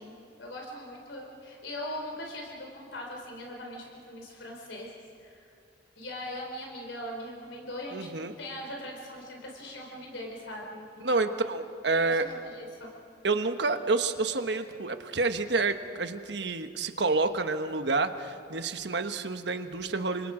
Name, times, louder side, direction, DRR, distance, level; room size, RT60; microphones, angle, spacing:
voice 1, 0.0-4.9 5.2-5.4 6.0-8.1 8.4-11.4 12.0-12.9, left 1 dB, 80° left, 0 dB, 3.8 m, -40 dB
voice 2, 7.9-8.3 11.0-12.2 13.2-20.3, right 3 dB, 65° right, 8 dB, 1.2 m, -29 dB
30.0 x 26.0 x 5.0 m, 2.5 s
head